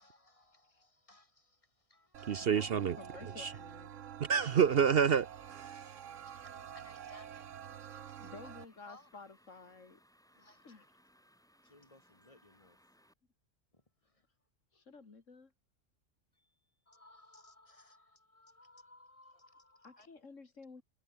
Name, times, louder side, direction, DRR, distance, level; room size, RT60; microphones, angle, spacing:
voice 1, 0.0-2.5 5.8-8.5 8.8-9.1 10.3-10.9 11.6-12.8 13.7-14.2 14.7-14.8 16.3-16.6 16.9-20.1, left 2 dB, 25° left, 3.2 m, -62 dB
sound 1, 2.1-8.7, right 9 dB, 75° right, 1.3 m, -48 dB
voice 2, 2.3-3.0 3.4-3.5 4.2-6.0, right 7 dB, 55° right, 0.9 m, -29 dB
voice 3, 3.0-4.0 6.3-6.5 8.2-10.0 10.6-10.8 14.7-15.5 19.8-20.8, left 4 dB, 75° left, 2.8 m, -52 dB
sound 2, 4.6-13.1, equal, 5° left, 7.3 m, -68 dB
omnidirectional pair, 1.3 m